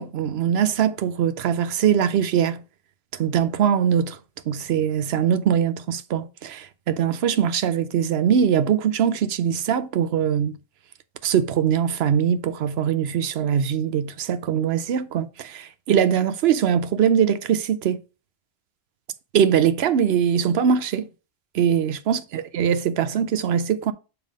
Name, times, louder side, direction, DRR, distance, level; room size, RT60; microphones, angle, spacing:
voice 1, 0.0-2.6 3.1-4.2 4.5-10.6 11.2-18.0 19.3-21.1 21.5-23.9, right 8 dB, 80° right, 0.9 m, -22 dB
7.3 x 3.4 x 5.1 m
omnidirectional pair, 1.1 m